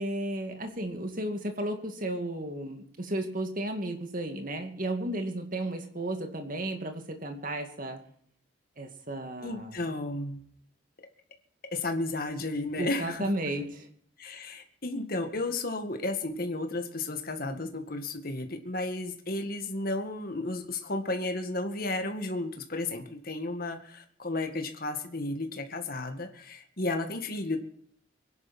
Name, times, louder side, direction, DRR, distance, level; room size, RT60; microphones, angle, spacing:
voice 1, 0.0-8.0 8.8-9.8 12.8-13.9, right 1 dB, 40° right, 5 dB, 2.3 m, -33 dB
voice 2, 9.4-10.4 11.7-13.3 14.2-27.6, left 2 dB, 45° left, 5 dB, 1.9 m, -33 dB
24.0 x 10.5 x 4.4 m, 0.62 s
head